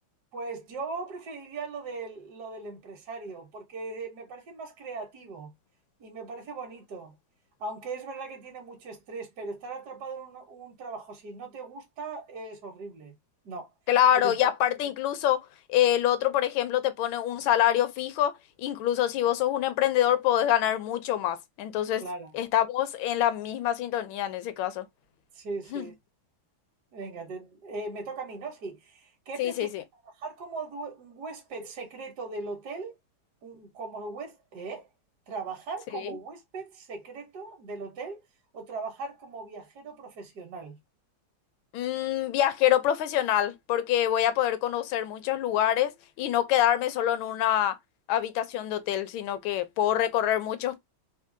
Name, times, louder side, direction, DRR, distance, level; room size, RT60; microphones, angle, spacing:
voice 1, 0.3-5.5 6.0-7.1 7.6-13.1 13.4-13.7 14.2-14.4 22.0-22.3 25.3-25.9 26.9-29.7 30.2-32.9 33.4-34.9 35.3-38.2 38.5-40.8, right 3 dB, 65° right, 1.2 m, -39 dB
voice 2, 13.9-18.3 18.6-22.0 22.3-24.9 25.7-25.8 29.4-29.8 41.7-45.9 46.2-47.8 48.1-50.8, left 11 dB, 85° left, 1.4 m, -25 dB
3.7 x 2.3 x 2.5 m
omnidirectional pair, 2.1 m